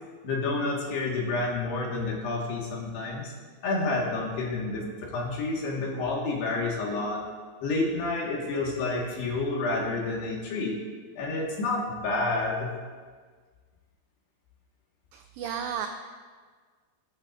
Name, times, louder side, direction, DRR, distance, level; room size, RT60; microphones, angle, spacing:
voice 1, 0.2-3.3 3.6-4.8 5.1-7.2 7.6-10.8 11.2-12.7, left 3 dB, 65° left, -3 dB, 3.6 m, -29 dB
voice 2, 15.1-15.9, right 8 dB, 90° right, 5 dB, 2.4 m, -33 dB
20.5 x 9.6 x 2.6 m, 1.5 s
omnidirectional pair, 5.5 m